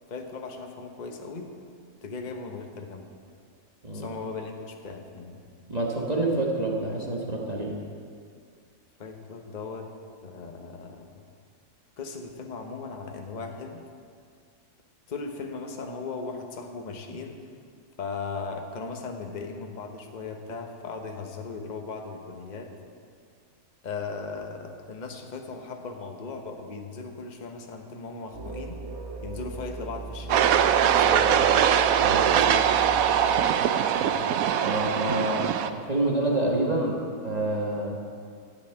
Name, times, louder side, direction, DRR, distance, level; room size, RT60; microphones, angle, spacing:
voice 1, 0.1-1.5 2.0-3.1 3.9-5.4 9.0-9.9 10.2-11.2 12.0-13.8 15.1-17.4 18.0-22.7 23.8-28.8 29.2-30.5 30.9-31.6 32.2-33.4 34.0-34.6 35.1-35.2 35.6-36.1 36.4-36.5, left 4 dB, 30° left, 3 dB, 1.0 m, -38 dB
voice 2, 5.7-7.8 32.0-32.6 34.6-38.0, right 2 dB, 30° right, -2 dB, 1.3 m, -28 dB
sound 1, 28.3-33.8, right 2 dB, 50° right, 1.2 m, -39 dB
sound 2, 30.3-35.7, right 9 dB, 70° right, 1.0 m, -22 dB
12.5 x 6.5 x 8.9 m, 2.2 s
omnidirectional pair, 1.7 m